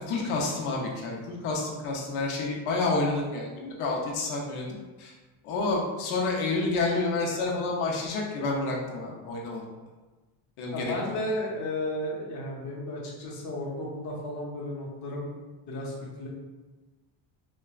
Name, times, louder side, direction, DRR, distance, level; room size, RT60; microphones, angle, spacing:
voice 1, 0.0-4.7 5.0-5.1 5.4-9.6 10.6-10.9, left 3 dB, 80° left, -2 dB, 0.8 m, -29 dB
voice 2, 10.7-15.3 15.7-16.3, left 1 dB, 35° left, -4 dB, 0.7 m, -33 dB
4.1 x 2.2 x 2.3 m, 1.2 s
cardioid pair, 160°, 48 cm